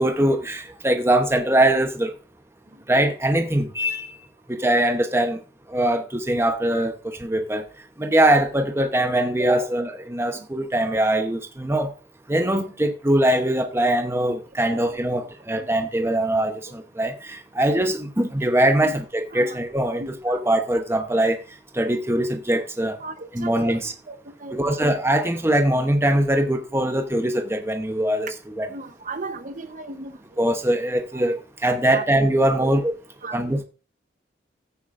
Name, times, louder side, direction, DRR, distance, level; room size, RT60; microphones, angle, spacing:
voice 1, 0.0-2.1 2.9-4.1 4.5-5.4 5.7-6.9 7.2-7.6 8.0-11.9 12.3-21.4 21.7-23.0 23.3-23.9 24.5-28.7 30.4-32.9 33.3-33.6, right 1 dB, 15° right, 0.9 m, -22 dB
voice 2, 20.0-20.4 23.0-23.8 24.1-24.8 28.7-30.4 31.9-32.0 32.6-32.7 33.2-33.4, right 3 dB, 45° right, 0.9 m, -36 dB
14.0 x 9.5 x 2.6 m
head